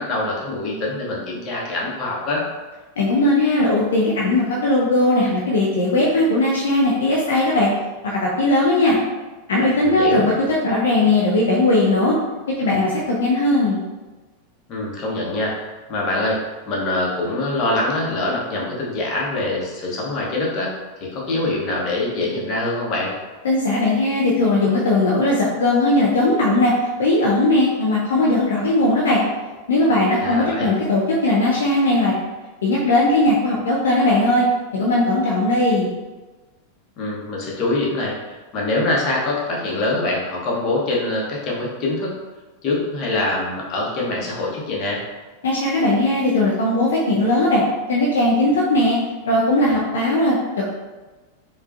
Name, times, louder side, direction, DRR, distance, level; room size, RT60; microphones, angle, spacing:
voice 1, 0.0-2.4 9.8-10.3 14.7-16.4 16.7-20.7 21.1-23.1 30.2-30.7 37.0-42.1 42.6-45.0, left 2 dB, 35° left, -3 dB, 1.0 m, -24 dB
voice 2, 3.0-7.7 8.0-9.0 9.5-12.2 12.6-13.8 23.4-26.7 27.0-29.2 29.7-32.1 32.6-34.5 34.7-35.9 45.4-47.6 47.9-49.0 49.3-50.7, left 2 dB, 65° left, -4 dB, 0.5 m, -18 dB
4.6 x 2.4 x 2.5 m, 1.2 s
figure-of-eight pair, 90°, 0 cm